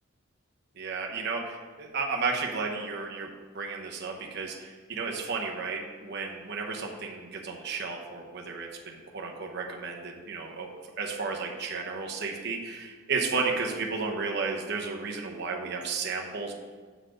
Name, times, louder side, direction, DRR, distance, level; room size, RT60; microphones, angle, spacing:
voice 1, 0.8-3.3 3.5-10.7 11.0-16.5, right 4 dB, 50° right, 1 dB, 0.9 m, -33 dB
8.0 x 4.1 x 5.0 m, 1.5 s
head